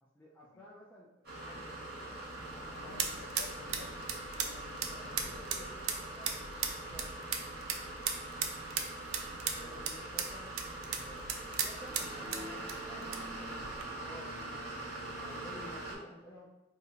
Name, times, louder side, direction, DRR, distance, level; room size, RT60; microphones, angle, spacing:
voice 1, 0.0-1.1 1.4-2.2 2.5-3.5 4.8-7.2 9.4-11.2 11.5-14.7 15.2-16.5, equal, 10° left, -7 dB, 0.4 m, -53 dB
sound 1, 1.2-15.9, right 2 dB, 50° right, 1.1 m, -43 dB
sound 2, 2.2-13.9, right 7 dB, 90° right, 0.4 m, -39 dB
voice 2, 2.7-5.7 9.5-10.1, left 3 dB, 65° left, 5 dB, 0.5 m, -53 dB
2.8 x 2.5 x 4.2 m, 1.0 s
head